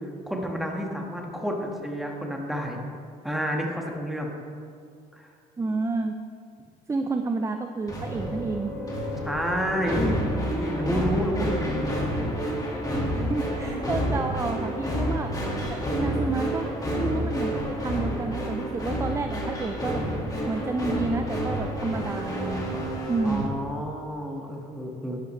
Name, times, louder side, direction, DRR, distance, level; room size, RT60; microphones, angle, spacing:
voice 1, 0.3-2.8 3.2-4.3 5.1-5.3 9.2-12.0 23.2-25.2, equal, ahead, 0 dB, 1.5 m, -30 dB
voice 2, 5.6-6.1 6.9-8.7 13.1-15.4 15.7-20.1 20.5-22.8 23.1-23.5, right 3 dB, 15° right, 6 dB, 0.5 m, -30 dB
sound 1, 7.9-23.5, equal, 20° left, 1.8 m, -29 dB
11.0 x 10.5 x 3.2 m, 2.3 s
cardioid pair, 110°, 17 cm